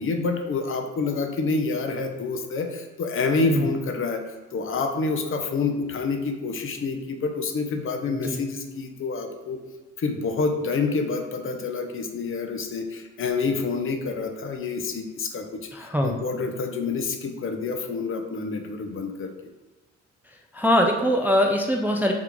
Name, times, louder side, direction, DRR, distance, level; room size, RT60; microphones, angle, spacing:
voice 1, 0.0-4.2 4.5-9.6 10.0-15.5 15.8-19.3, left 4 dB, 45° left, 5 dB, 0.6 m, -27 dB
voice 2, 8.1-8.4 15.7-16.2 20.5-22.1, equal, 5° right, 2 dB, 0.3 m, -22 dB
3.6 x 2.4 x 4.5 m, 1.2 s
cardioid pair, 90°, 30 cm